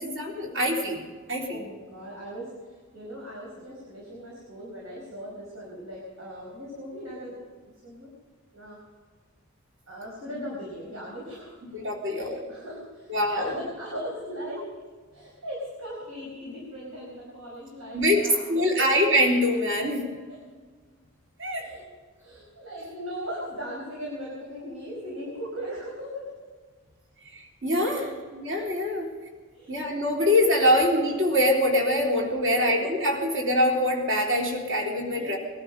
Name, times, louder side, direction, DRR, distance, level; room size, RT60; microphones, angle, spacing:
voice 1, 0.0-1.6 11.7-12.4 13.1-13.5 17.9-18.2 18.5-20.0 21.4-21.7 27.3-29.0 29.7-35.4, left 1 dB, 55° right, -1 dB, 3.7 m, -24 dB
voice 2, 1.5-7.3 7.8-8.1 8.5-8.8 9.9-11.5 12.1-14.6 15.1-18.9 20.3-20.4 21.6-21.8 22.2-26.3 27.9-28.1 29.0-29.1 29.5-29.8 32.4-32.6 35.1-35.4, equal, 75° right, -4 dB, 5.1 m, -38 dB
21.5 x 12.0 x 5.5 m, 1.5 s
head